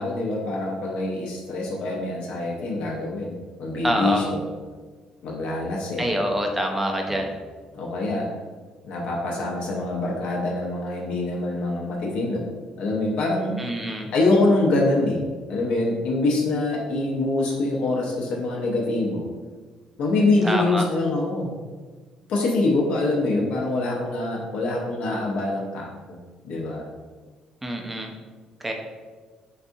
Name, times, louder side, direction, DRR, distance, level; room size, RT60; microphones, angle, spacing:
voice 1, 0.0-4.4 5.2-6.1 7.1-7.2 7.7-8.3 8.8-12.5 12.8-13.6 14.1-15.2 15.5-19.3 20.0-21.5 22.3-26.2 26.4-26.8, left 2 dB, 65° left, -2 dB, 0.7 m, -24 dB
voice 2, 3.8-4.2 6.0-7.3 13.6-14.1 20.4-20.9 27.6-28.1 28.6-28.7, equal, 10° right, 2 dB, 0.4 m, -25 dB
4.0 x 3.5 x 2.6 m, 1.4 s
cardioid pair, 170°, 2 cm